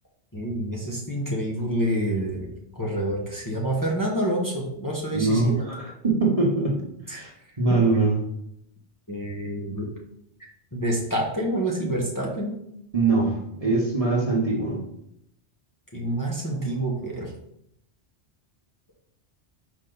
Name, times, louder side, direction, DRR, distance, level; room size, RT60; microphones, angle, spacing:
voice 1, 0.3-2.5 2.8-5.5 7.1-7.2 9.1-9.9 10.7-12.6 15.9-17.3, right 1 dB, 20° left, -3 dB, 1.1 m, -27 dB
voice 2, 5.1-7.3 7.6-8.2 12.9-14.8, right 3 dB, 35° right, -3 dB, 1.2 m, -23 dB
5.7 x 4.9 x 3.9 m, 0.77 s
omnidirectional pair, 1.2 m